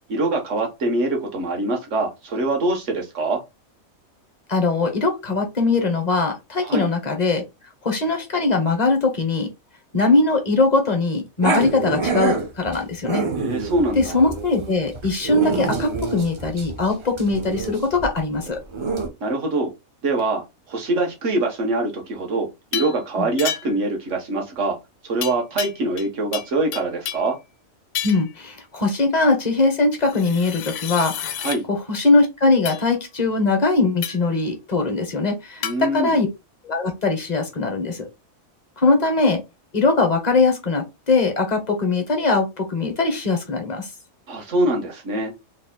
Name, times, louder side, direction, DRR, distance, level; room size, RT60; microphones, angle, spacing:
voice 1, 0.1-3.4 6.6-6.9 13.4-14.2 19.2-19.7 20.0-24.8 25.0-27.4 31.4-31.6 35.6-36.2 44.3-45.3, right 2 dB, 65° right, 2 dB, 1.5 m, -24 dB
voice 2, 4.5-7.4 7.8-9.5 9.9-13.2 13.9-18.6 28.0-31.4 31.7-35.6 35.9-36.3 36.6-38.1 38.8-39.4 39.7-43.9, left 3 dB, 35° left, 5 dB, 1.1 m, -21 dB
Growling, 11.4-19.1, right 4 dB, 45° right, 0.3 m, -26 dB
sound 1, 22.7-23.0 23.4-23.9 25.2-26.1 26.3-27.3 27.9-28.3 30.0-31.6 32.7-32.8 34.0-34.3 35.6-35.8, left 10 dB, 80° left, 1.0 m, -30 dB
4.0 x 3.4 x 2.2 m, 0.23 s
omnidirectional pair, 1.4 m